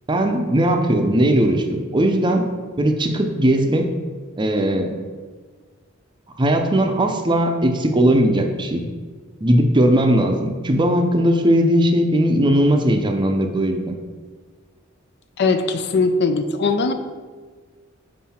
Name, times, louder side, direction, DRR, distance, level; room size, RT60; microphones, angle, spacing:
voice 1, 0.1-2.5 2.8-3.9 4.4-4.9 6.4-8.9 9.4-13.9, right 1 dB, 20° right, 4 dB, 0.5 m, -18 dB
voice 2, 15.4-16.9, left 4 dB, 55° left, 8 dB, 0.4 m, -20 dB
5.6 x 5.0 x 4.3 m, 1.5 s
head